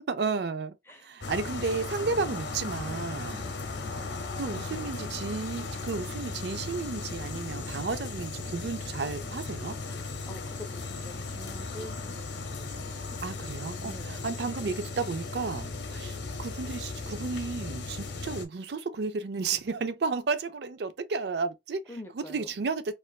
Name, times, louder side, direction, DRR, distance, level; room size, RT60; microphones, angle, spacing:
voice 1, 0.1-3.4 4.4-9.8 13.2-22.9, right 4 dB, 70° right, 0.5 m, -33 dB
sound 1, 1.2-18.5, left 3 dB, 85° left, 0.8 m, -37 dB
voice 2, 4.6-5.0 9.8-12.9 13.8-14.3 21.9-22.5, left 1 dB, 15° left, 0.7 m, -46 dB
4.4 x 2.5 x 2.3 m
head